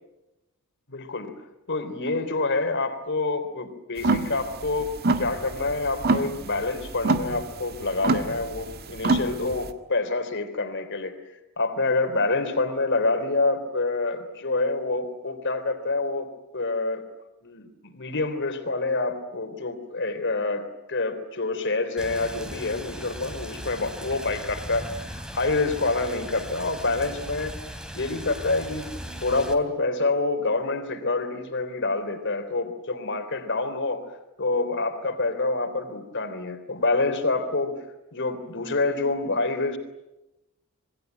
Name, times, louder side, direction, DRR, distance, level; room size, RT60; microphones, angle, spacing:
voice 1, 0.9-1.3 1.7-11.2 11.6-16.3 16.5-17.0 17.4-27.6 27.9-34.1 34.4-37.8 38.1-39.8, left 3 dB, 55° left, 9 dB, 3.5 m, -27 dB
sound 1, 4.0-9.7, right 3 dB, 45° right, 1.8 m, -26 dB
Rain, 22.0-29.5, equal, 5° right, 3.0 m, -38 dB
27.5 x 21.5 x 9.3 m, 0.94 s
head